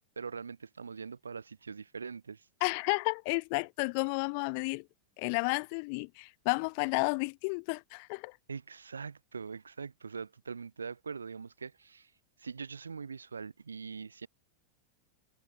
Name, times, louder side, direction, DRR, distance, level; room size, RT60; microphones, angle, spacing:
voice 1, 0.2-2.5 8.5-12.1 12.4-14.3, right 5 dB, 75° right, 0.7 m, -42 dB
voice 2, 2.6-4.9 5.2-8.4, left 34 dB, 45° left, 0.7 m, -32 dB
figure-of-eight pair, 90°, 0 cm